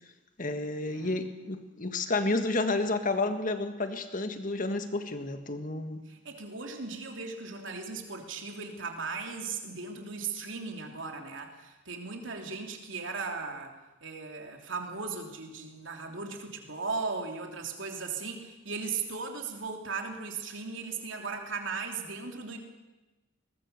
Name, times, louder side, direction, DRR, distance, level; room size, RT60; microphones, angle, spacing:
voice 1, 0.4-6.0, left 2 dB, 40° left, 8 dB, 1.8 m, -30 dB
voice 2, 6.1-13.8 14.0-22.6, right 4 dB, 70° right, 3 dB, 3.2 m, -37 dB
21.5 x 20.0 x 6.9 m, 1.1 s
head